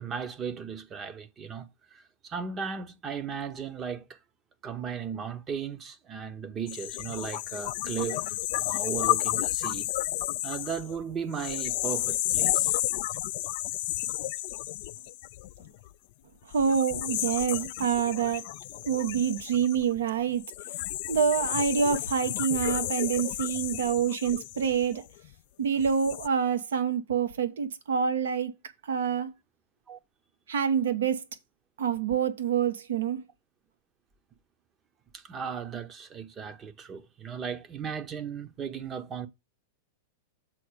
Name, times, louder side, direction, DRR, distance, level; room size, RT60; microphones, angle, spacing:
voice 1, 0.0-4.2 4.6-9.9 10.4-12.8 29.9-30.0 35.1-39.3, right 7 dB, 25° right, 0.9 m, -36 dB
sound 1, 6.7-15.9 16.5-25.3 25.8-26.3, left 18 dB, 60° left, 0.3 m, -32 dB
voice 2, 16.5-18.5 18.9-20.4 21.1-25.0 25.6-28.5 28.8-29.3 30.5-31.2 31.8-33.2, right 7 dB, 80° right, 1.0 m, -27 dB
7.6 x 4.2 x 4.9 m
hypercardioid pair, 110°, 0 cm